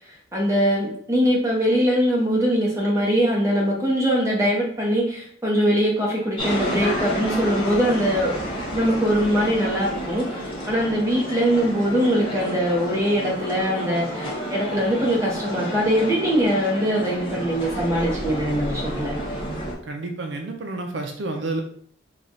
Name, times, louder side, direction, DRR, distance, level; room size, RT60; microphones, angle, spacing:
voice 1, 0.3-8.4 8.7-19.2, equal, 15° right, -3 dB, 0.9 m, -22 dB
sound 1, 6.4-19.7, equal, 25° left, 0.8 m, -30 dB
voice 2, 19.8-21.6, right 2 dB, 70° right, 3 dB, 0.5 m, -30 dB
3.1 x 2.3 x 4.0 m, 0.62 s
head